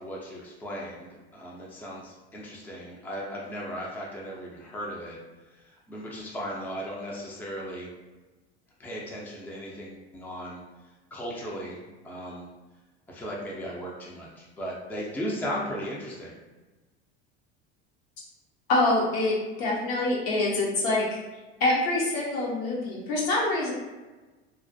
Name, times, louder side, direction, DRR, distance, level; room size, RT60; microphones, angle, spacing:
voice 1, 0.0-5.2 5.5-7.9 8.8-10.6 11.1-12.5 13.1-16.4, equal, 5° left, -3 dB, 0.4 m, -36 dB
voice 2, 18.7-21.1 21.6-23.7, left 2 dB, 70° left, -4 dB, 0.9 m, -25 dB
2.4 x 2.1 x 2.5 m, 1.2 s
hypercardioid pair, 90°, 31 cm